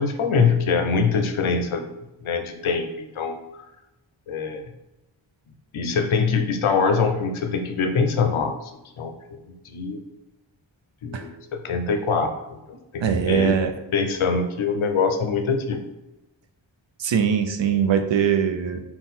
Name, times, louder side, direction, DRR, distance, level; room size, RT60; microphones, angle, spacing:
voice 1, 0.0-1.9 2.2-3.6 4.3-4.6 5.7-8.7 9.0-10.0 11.0-13.6 13.9-15.8, left 5 dB, 85° left, 6 dB, 0.6 m, -24 dB
voice 2, 13.0-13.7 17.0-18.8, right 7 dB, 70° right, 7 dB, 0.5 m, -21 dB
3.8 x 2.3 x 4.0 m, 0.97 s
wide cardioid pair, 60°, 47 cm